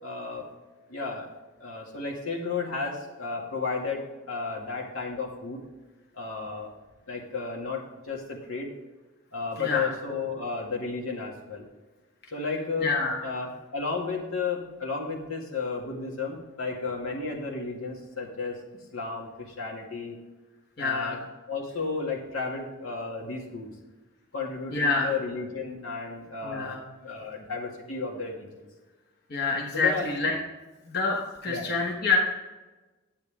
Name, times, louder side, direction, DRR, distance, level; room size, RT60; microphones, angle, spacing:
voice 1, 0.0-0.5 0.9-1.3 1.6-5.6 6.1-6.7 7.1-8.7 9.3-11.6 12.3-13.0 13.2-20.2 20.8-21.2 21.5-23.7 24.3-28.7 29.7-30.1 31.5-31.6, left 4 dB, 80° left, -1 dB, 2.1 m, -33 dB
voice 2, 9.6-9.9 12.8-13.2 20.8-21.2 24.7-25.1 26.4-26.8 29.3-30.4 30.8-32.2, left 4 dB, 50° left, -1 dB, 1.1 m, -27 dB
10.5 x 8.4 x 3.5 m, 1.2 s
head